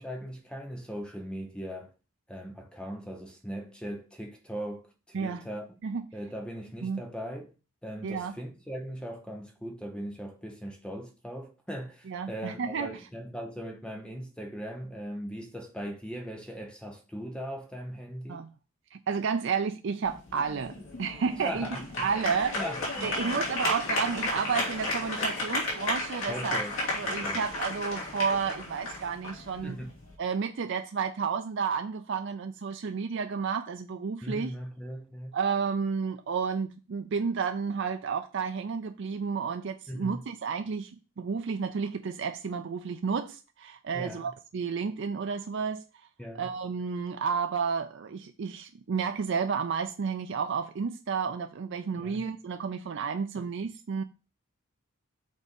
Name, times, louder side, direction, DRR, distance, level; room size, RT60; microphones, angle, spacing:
voice 1, 0.0-1.9 2.3-5.8 6.1-7.5 7.8-18.4 21.4-23.1 26.3-26.7 27.0-27.4 29.6-29.9 34.2-35.3 39.9-40.2 43.9-44.3 46.2-46.5 52.0-52.3, equal, 5° left, 0.7 m, -39 dB
voice 2, 8.0-8.4 12.1-12.9 18.3-18.5 18.9-21.7 22.0-22.6 23.0-29.8 30.2-34.5 35.3-40.9 41.2-45.8 46.3-54.0, right 5 dB, 60° right, 0.4 m, -31 dB
sound 1, 20.0-30.1, left 2 dB, 80° left, 3.4 m, -33 dB
6.2 x 3.7 x 5.2 m
head